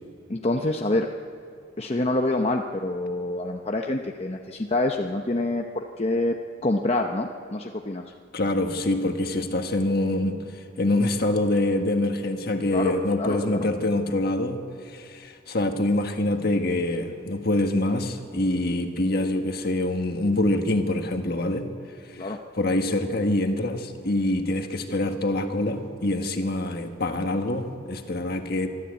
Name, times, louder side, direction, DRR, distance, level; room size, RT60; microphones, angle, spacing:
voice 1, 0.3-1.1 1.8-6.4 6.6-8.0 12.7-13.7 22.2-22.4, left 2 dB, 30° left, 3 dB, 0.8 m, -26 dB
voice 2, 8.3-21.7 22.0-28.7, left 1 dB, 50° left, 5 dB, 1.6 m, -25 dB
24.0 x 13.0 x 8.4 m, 2.4 s
head